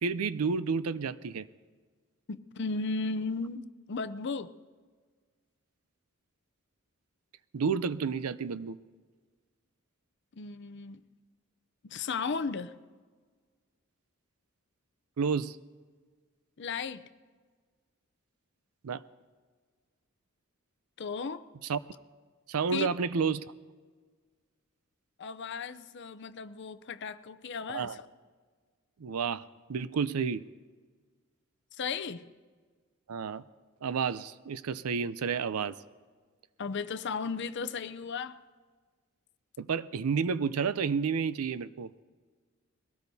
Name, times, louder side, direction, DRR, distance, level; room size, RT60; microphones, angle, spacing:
voice 1, 0.0-1.5 7.5-8.8 15.2-15.6 18.8-19.0 21.6-21.8 22.5-23.5 27.7-28.0 29.0-29.4 29.7-30.5 33.1-33.4 33.8-35.8 39.6-42.0, right 5 dB, 90° right, 0.5 m, -30 dB
voice 2, 2.3-4.5 10.3-11.0 11.8-12.7 16.6-17.0 21.0-21.4 22.7-22.9 25.2-28.0 31.8-32.3 36.6-38.4, left 4 dB, 55° left, 0.5 m, -35 dB
22.0 x 17.5 x 2.7 m
head